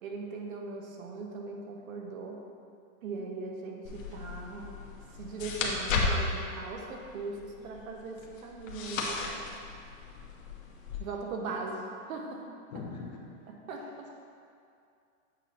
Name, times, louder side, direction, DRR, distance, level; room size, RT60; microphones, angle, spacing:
voice 1, 0.0-2.4 3.0-4.8 5.2-9.5 11.0-12.5 13.7-14.1, right 3 dB, 70° right, 1 dB, 1.1 m, -39 dB
sound 1, 3.8-11.0, left 3 dB, 65° left, 1.1 m, -35 dB
voice 2, 12.7-13.3, left 4 dB, 35° left, -1 dB, 0.4 m, -42 dB
8.0 x 2.9 x 5.6 m, 2.4 s
supercardioid pair, 170°, 42 cm